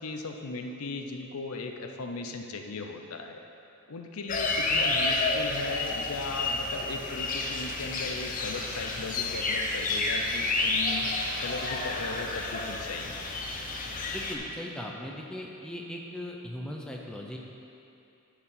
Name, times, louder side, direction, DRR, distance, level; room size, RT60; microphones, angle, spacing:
voice 1, 0.0-3.4 3.9-11.0 11.4-13.1, left 3 dB, 70° left, 4 dB, 0.6 m, -37 dB
sound 1, 4.3-14.3, left 3 dB, 35° left, 0.7 m, -30 dB
voice 2, 14.1-17.4, left 1 dB, 5° left, -1 dB, 0.6 m, -39 dB
10.0 x 4.7 x 5.7 m, 2.7 s
head